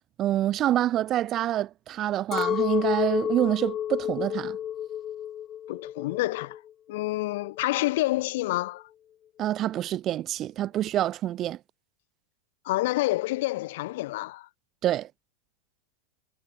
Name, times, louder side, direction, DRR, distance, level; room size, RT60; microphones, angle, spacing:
voice 1, 0.2-4.6 9.4-11.6 14.8-15.1, right 12 dB, 35° right, 4.0 m, -26 dB
Chink clink, 2.3-6.7 6.9-7.7, left 10 dB, 30° left, 1.4 m, -30 dB
voice 2, 5.7-6.6 6.9-8.9 12.7-14.5, left 18 dB, 60° left, 3.5 m, -28 dB
hypercardioid pair, 95°, 0 cm